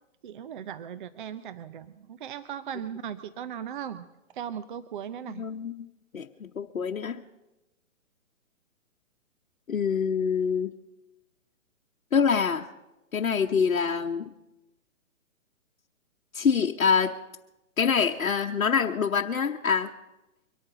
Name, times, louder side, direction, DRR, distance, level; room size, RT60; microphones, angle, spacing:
voice 1, 0.2-4.1 4.3-5.5, right 9 dB, 40° right, 13 dB, 0.6 m, -38 dB
voice 2, 5.4-5.7 6.1-7.2 9.7-10.7 12.1-12.7 13.1-14.3 16.3-17.2 17.8-19.9, left 6 dB, 80° left, 2 dB, 1.0 m, -25 dB
23.5 x 8.9 x 6.7 m, 0.97 s
hypercardioid pair, 135°, 41 cm